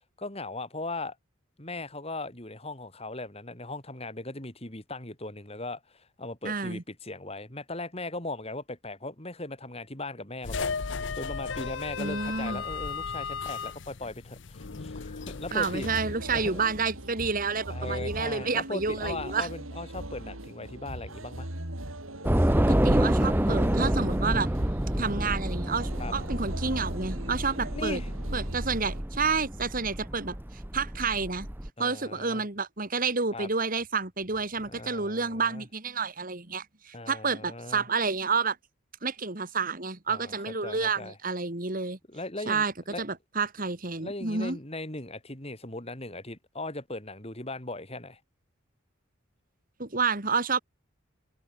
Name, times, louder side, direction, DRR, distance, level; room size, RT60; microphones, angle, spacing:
voice 1, 0.2-1.2 1.6-15.9 16.3-16.6 17.7-21.5 26.0-26.1 27.7-28.1 31.8-32.4 33.3-33.5 34.6-35.7 36.9-37.9 40.1-40.3 40.6-41.2 42.1-43.0 44.0-48.2, left 2 dB, 30° left, 3.6 m, -38 dB
voice 2, 6.4-6.8 12.0-12.6 15.5-19.5 22.7-24.5 25.0-28.0 28.3-30.4 30.7-31.5 31.8-38.6 39.0-42.0 42.5-42.7 43.0-44.6 49.8-50.6, right 4 dB, 45° right, 2.3 m, -29 dB
sound 1, 10.4-17.0, left 5 dB, 60° left, 0.8 m, -36 dB
sound 2, 15.8-29.0, right 1 dB, 85° right, 5.1 m, -40 dB
Train / Subway metro underground, 22.2-31.7, right 1 dB, 10° right, 0.9 m, -28 dB
head